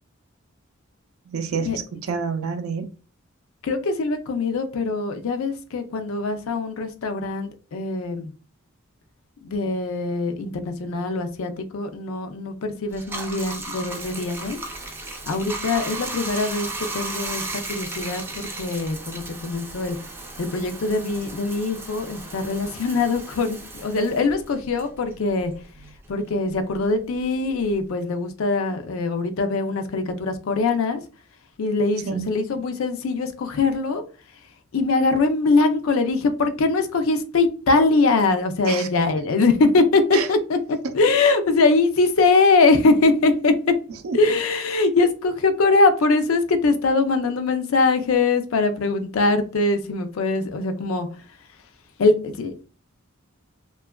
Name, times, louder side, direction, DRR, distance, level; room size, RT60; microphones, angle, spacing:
voice 1, 1.3-2.9 32.1-32.3 38.7-38.9 40.1-40.3 40.8-40.9 44.0-44.2, right 5 dB, 80° right, 0.5 m, -28 dB
voice 2, 3.6-8.3 9.4-14.6 15.3-20.0 20.4-25.5 26.1-31.0 31.6-34.0 34.7-43.5 44.1-51.1 52.0-52.7, left 3 dB, 75° left, 0.4 m, -22 dB
Bathtub (filling or washing), 12.9-25.7 26.0-27.9, right 2 dB, 10° right, 0.3 m, -35 dB
2.8 x 2.3 x 2.2 m
head